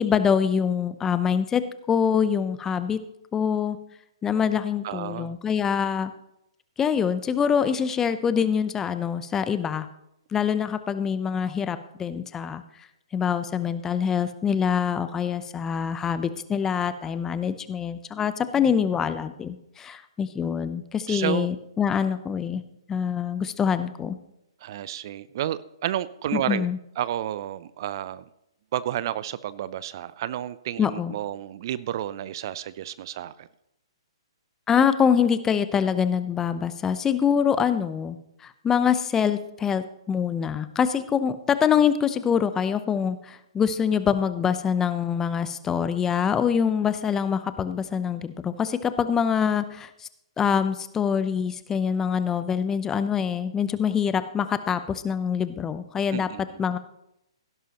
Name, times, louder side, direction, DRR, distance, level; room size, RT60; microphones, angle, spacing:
voice 1, 0.0-1.6 1.9-3.0 3.3-3.8 4.2-6.1 6.8-9.9 10.3-12.6 13.1-22.6 22.9-24.2 26.3-26.8 30.8-31.1 34.7-38.2 38.4-50.1 50.4-56.3 56.6-56.8, left 7 dB, 15° left, 12 dB, 0.7 m, -25 dB
voice 2, 4.8-5.3 21.1-21.5 24.6-26.7 27.0-28.2 28.7-33.5 56.1-56.6, right 12 dB, 50° right, 17 dB, 0.5 m, -31 dB
16.5 x 11.0 x 3.0 m, 0.82 s
hypercardioid pair, 130°, 3 cm